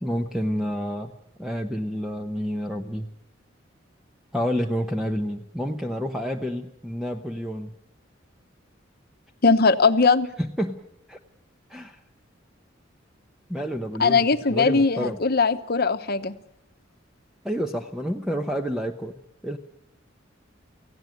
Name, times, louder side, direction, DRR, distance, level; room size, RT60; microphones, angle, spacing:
voice 1, 0.0-1.1 1.4-3.1 4.3-7.7 10.4-10.8 11.1-11.2 11.7-12.0 13.5-14.2 14.5-15.2 17.4-19.6, equal, ahead, 4 dB, 0.8 m, -29 dB
voice 2, 9.4-10.3 14.0-16.3, left 4 dB, 55° left, 10 dB, 1.0 m, -20 dB
18.0 x 16.0 x 9.2 m, 0.82 s
head